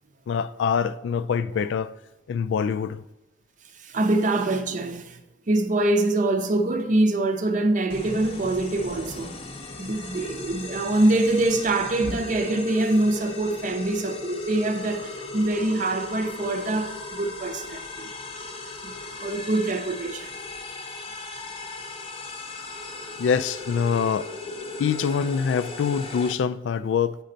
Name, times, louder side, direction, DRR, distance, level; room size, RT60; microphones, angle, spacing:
voice 1, 0.3-1.9 2.3-3.0 23.2-24.3 24.8-27.2, left 6 dB, 90° left, 0.3 m, -25 dB
voice 2, 3.8-5.2 5.5-9.4 9.8-18.1 18.8-20.3, right 2 dB, 45° right, 0.6 m, -24 dB
sound 1, 7.9-26.3, left 3 dB, 30° left, 0.6 m, -37 dB
9.0 x 4.3 x 3.9 m
head